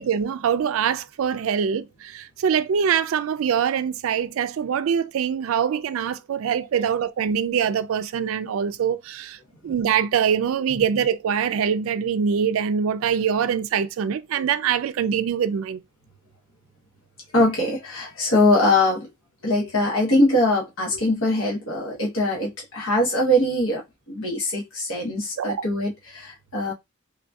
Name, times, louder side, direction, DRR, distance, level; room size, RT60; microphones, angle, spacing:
voice 1, 0.0-9.4 9.6-15.8 25.4-25.6, right 7 dB, 75° right, 0.3 m, -24 dB
voice 2, 17.3-19.1 19.4-23.8 24.1-26.7, left 1 dB, 75° left, 0.9 m, -22 dB
3.6 x 2.6 x 2.3 m
head